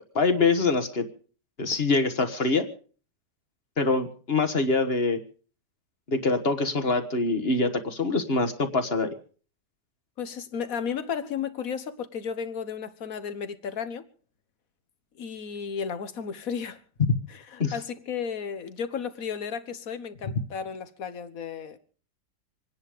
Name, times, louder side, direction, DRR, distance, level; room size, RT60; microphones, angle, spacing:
voice 1, 0.1-1.0 1.6-2.7 3.8-5.2 6.1-9.1 17.6-17.7, left 3 dB, 40° left, 1.6 m, -24 dB
voice 2, 10.2-14.0 15.2-16.8 17.3-21.8, left 7 dB, 60° left, 1.6 m, -34 dB
26.0 x 10.5 x 5.1 m
omnidirectional pair, 1.8 m